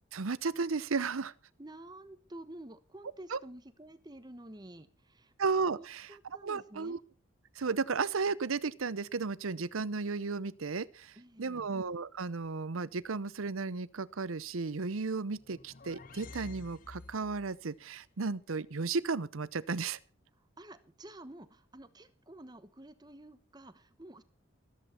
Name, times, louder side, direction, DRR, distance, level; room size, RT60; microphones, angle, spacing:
voice 1, 0.1-1.3 3.3-3.4 5.4-6.1 6.4-7.0 7.6-20.0, right 4 dB, 85° right, 0.7 m, -34 dB
voice 2, 1.6-5.3 5.7-7.0 11.2-11.7 20.4-24.2, right 1 dB, 20° right, 1.0 m, -50 dB
sound 1, 15.3-17.6, left 3 dB, 40° left, 0.6 m, -50 dB
14.5 x 13.5 x 4.3 m
head